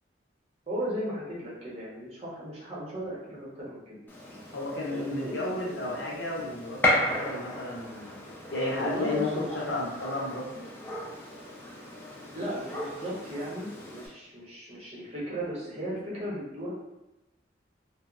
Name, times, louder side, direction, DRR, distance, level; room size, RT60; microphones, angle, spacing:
voice 1, 0.7-4.0 4.9-6.1 8.7-9.5 12.3-16.7, equal, 35° right, -7 dB, 0.7 m, -36 dB
Gunshot gunfire, 4.1-14.1, left 1 dB, 10° left, 0.3 m, -34 dB
voice 2, 4.5-8.2 8.5-10.6, left 2 dB, 70° left, -3 dB, 0.7 m, -33 dB
2.8 x 2.0 x 2.4 m, 0.97 s
head